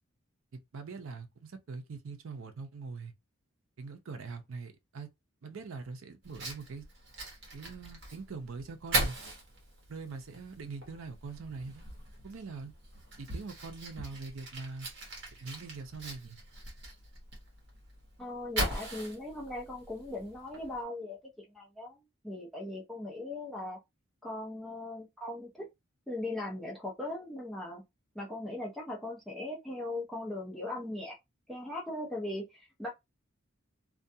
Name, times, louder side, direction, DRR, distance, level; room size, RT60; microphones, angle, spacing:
voice 1, 0.5-3.1 3.8-5.1 5.4-6.9 7.5-9.2 9.9-11.8 12.2-12.7 13.2-14.9 15.4-16.4, right 4 dB, 75° right, 0.5 m, -43 dB
Fire, 6.2-20.8, right 2 dB, 55° right, 1.0 m, -40 dB
voice 2, 18.2-23.8 24.2-25.7 26.1-27.8 28.1-31.1 31.5-32.9, left 2 dB, ahead, 0.6 m, -39 dB
2.4 x 2.2 x 2.7 m
head